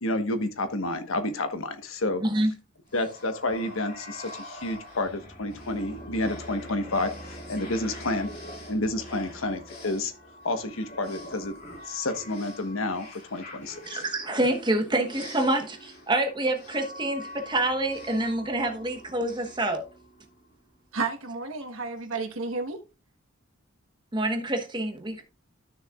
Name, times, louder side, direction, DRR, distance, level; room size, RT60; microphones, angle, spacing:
voice 1, 0.0-2.2 2.9-7.1 7.5-8.3 8.7-10.1 10.4-11.5 11.9-14.0, left 2 dB, 85° left, 1.2 m, -30 dB
voice 2, 2.2-2.5 13.9-19.8 24.1-25.2, right 1 dB, 20° right, 1.1 m, -27 dB
sound 1, 2.9-20.5, left 1 dB, 50° left, 4.5 m, -44 dB
voice 3, 20.9-22.8, right 4 dB, 85° right, 1.3 m, -31 dB
13.0 x 6.4 x 2.4 m
head